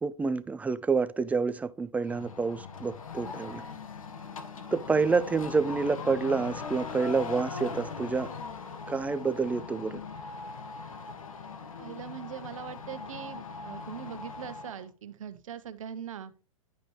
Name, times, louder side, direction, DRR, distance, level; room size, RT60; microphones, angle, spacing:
voice 1, 0.0-3.6 4.7-8.3 8.9-10.0, right 4 dB, 10° right, 0.3 m, -28 dB
sound 1, 2.0-14.9, left 5 dB, 75° left, 1.2 m, -40 dB
voice 2, 11.8-16.3, right 9 dB, 70° right, 1.0 m, -41 dB
10.5 x 5.2 x 3.0 m
hypercardioid pair, 110°, 18 cm